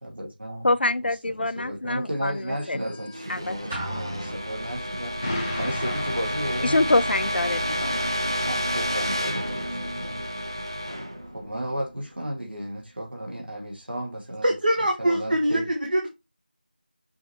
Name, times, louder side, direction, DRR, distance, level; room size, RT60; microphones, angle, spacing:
voice 1, 0.0-0.7 1.2-5.2 5.5-6.8 8.4-10.2 11.2-14.5 15.0-15.7, equal, 75° right, 1.6 m, -34 dB
voice 2, 0.6-2.8 3.3-3.6 6.6-8.1, left 2 dB, 80° left, 0.3 m, -25 dB
sound 1, 2.4-12.2, equal, 25° right, 0.4 m, -30 dB
sound 2, 3.7-5.2, right 1 dB, 10° right, 1.1 m, -36 dB
Explosion, 5.2-7.4, left 1 dB, 15° left, 0.7 m, -34 dB
voice 3, 14.4-16.1, right 1 dB, 55° right, 0.9 m, -23 dB
5.5 x 3.0 x 2.8 m
figure-of-eight pair, 175°, 5 cm